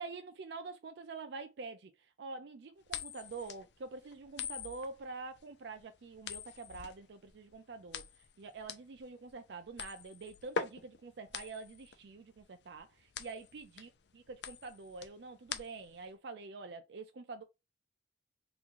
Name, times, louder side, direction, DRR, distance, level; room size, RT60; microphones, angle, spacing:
voice 1, 0.0-17.4, right 4 dB, 70° right, 0.4 m, -46 dB
sound 1, 2.9-16.1, left 6 dB, 70° left, 0.4 m, -44 dB
3.6 x 3.1 x 2.5 m
head